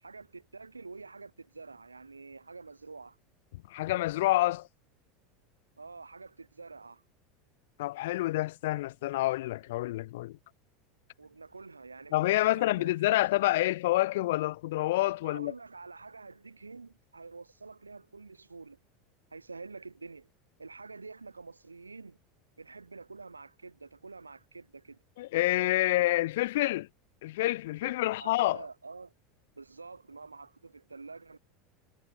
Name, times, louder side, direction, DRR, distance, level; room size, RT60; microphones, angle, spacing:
voice 1, 0.0-3.2 5.8-7.0 11.2-13.2 15.2-18.8 19.3-20.3 20.6-22.2 22.6-25.0 27.8-29.1 29.6-31.4, right 4 dB, 85° right, 0.5 m, -47 dB
voice 2, 3.7-4.7 7.8-10.4 12.1-15.5 25.2-26.9 27.2-28.6, left 17 dB, 60° left, 0.3 m, -28 dB
figure-of-eight pair, 80°, 0 cm